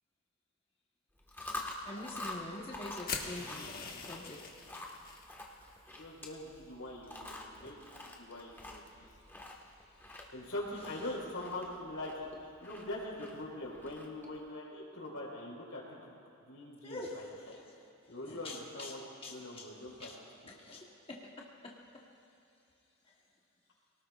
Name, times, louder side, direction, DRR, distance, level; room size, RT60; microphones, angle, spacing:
Chewing mastication, 1.2-14.4, left 2 dB, 10° left, 1.4 m, -47 dB
voice 1, 1.8-3.7 4.1-4.5 16.8-17.8 18.2-18.9 19.2-19.8 20.1-20.2 20.5-21.3 21.6-21.8, left 2 dB, 25° left, -2 dB, 1.2 m, -45 dB
sound 1, 3.1-5.2, left 5 dB, 45° left, 1.3 m, -42 dB
voice 2, 6.0-8.8 10.3-12.3 12.6-16.1 16.5-17.6 18.1-19.0 19.3-20.1, left 1 dB, 85° left, -3 dB, 4.3 m, -43 dB
26.5 x 18.5 x 2.4 m, 2.8 s
head